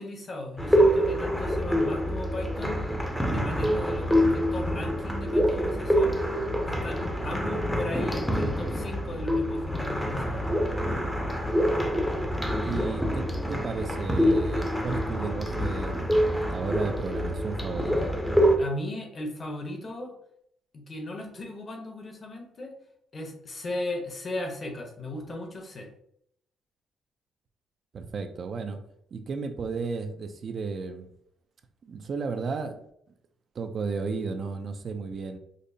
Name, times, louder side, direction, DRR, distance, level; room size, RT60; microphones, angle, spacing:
voice 1, 0.0-2.8 3.2-6.2 6.6-10.4 18.6-20.1 20.7-22.7 23.1-25.9, left 1 dB, 40° left, 2 dB, 1.0 m, -37 dB
sound 1, 0.6-18.6, equal, 5° left, 0.7 m, -26 dB
voice 2, 12.6-18.1 27.9-28.8 29.1-31.1 31.8-32.8 33.5-35.4, right 4 dB, 50° right, 7 dB, 0.4 m, -34 dB
5.1 x 2.0 x 2.7 m, 0.72 s
cardioid pair, 90°, 0 cm